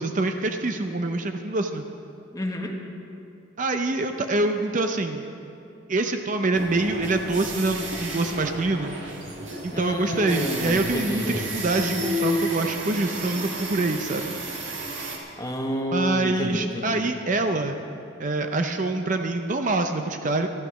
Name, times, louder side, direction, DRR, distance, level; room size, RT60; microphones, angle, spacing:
voice 1, 0.0-1.8 3.6-5.2 5.9-9.0 9.6-14.3 15.9-17.8 18.2-20.5, right 2 dB, 40° right, 6 dB, 0.5 m, -25 dB
voice 2, 2.3-2.8 9.7-11.5 15.4-17.1, equal, 15° left, 2 dB, 1.1 m, -30 dB
sound 1, 6.5-15.2, equal, 65° right, 2.0 m, -31 dB
13.0 x 11.5 x 6.2 m, 2.7 s
head